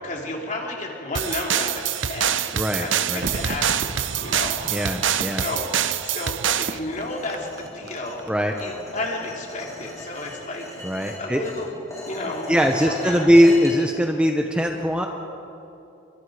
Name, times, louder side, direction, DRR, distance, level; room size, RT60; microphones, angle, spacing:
voice 1, 0.0-2.5 2.8-4.6 5.4-5.7 6.0-8.2 8.6-10.7 11.2-11.8 12.1-13.3, left 2 dB, 40° left, 0 dB, 3.5 m, -32 dB
sound 1, 1.1-6.8, right 9 dB, 80° right, 0.8 m, -25 dB
voice 2, 2.5-3.3 4.7-5.4 8.3-8.5 10.8-11.4 12.2-15.1, equal, 5° right, 2 dB, 1.1 m, -20 dB
Crowd / Fireworks, 3.2-8.6 8.9-9.0, right 2 dB, 55° right, 1.3 m, -36 dB
sound 2, 6.8-13.7, left 1 dB, 15° left, 5.6 m, -39 dB
29.5 x 25.0 x 5.1 m, 2.8 s
head